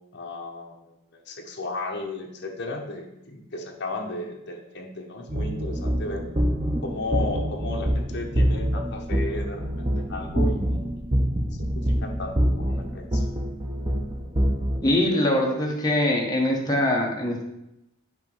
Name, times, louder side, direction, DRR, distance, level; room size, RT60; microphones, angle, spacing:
voice 1, 0.1-6.3 6.8-10.7 11.6-13.3, left 2 dB, 55° left, 2 dB, 1.0 m, -34 dB
sound 1, 5.3-14.8, equal, 20° right, 0.7 m, -25 dB
voice 2, 14.8-17.4, left 1 dB, 20° left, -1 dB, 1.1 m, -23 dB
7.9 x 3.0 x 5.4 m, 0.86 s
head